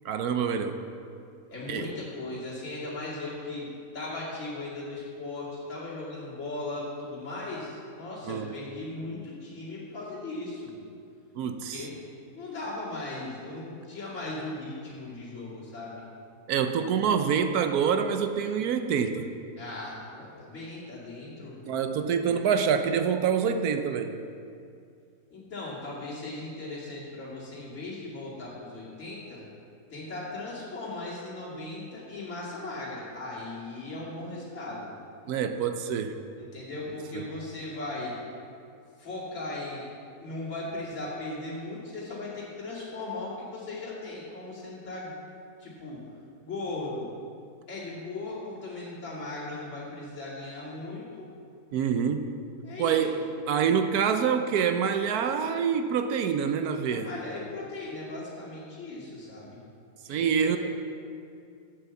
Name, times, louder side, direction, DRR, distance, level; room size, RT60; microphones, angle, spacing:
voice 1, 0.0-0.8 1.7-1.9 8.2-8.5 11.3-11.9 16.5-19.3 21.6-24.2 35.3-36.2 37.1-37.3 51.7-52.3 52.8-53.1 53.5-57.1 60.1-60.6, right 7 dB, 70° right, 8 dB, 1.1 m, -26 dB
voice 2, 1.5-3.7 3.9-10.7 11.7-11.9 12.3-16.0 19.6-21.6 22.1-22.4 25.3-29.4 29.9-34.9 36.4-38.1 39.0-39.9 40.2-45.1 45.6-46.0 46.4-47.1 47.7-51.3 52.6-53.1 56.9-59.6 60.1-60.6, left 2 dB, 45° left, -8 dB, 2.6 m, -38 dB
8.2 x 7.8 x 7.0 m, 2.4 s
omnidirectional pair, 1.7 m